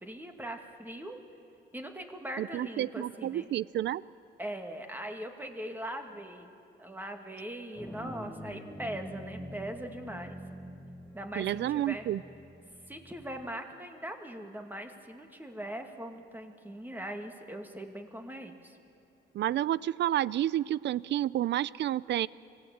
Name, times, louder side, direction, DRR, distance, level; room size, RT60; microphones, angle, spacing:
voice 1, 0.0-1.2 1.7-3.5 4.4-6.5 6.8-10.4 11.1-12.1 12.9-18.8, right 1 dB, 10° right, 4 dB, 2.4 m, -41 dB
voice 2, 2.4-4.0 11.4-12.2 19.3-22.3, right 12 dB, 65° right, 21 dB, 0.5 m, -30 dB
sound 1, 7.8-13.5, equal, 10° left, 4.5 m, -46 dB
25.5 x 18.0 x 8.9 m, 2.7 s
cardioid pair, 90°, 20 cm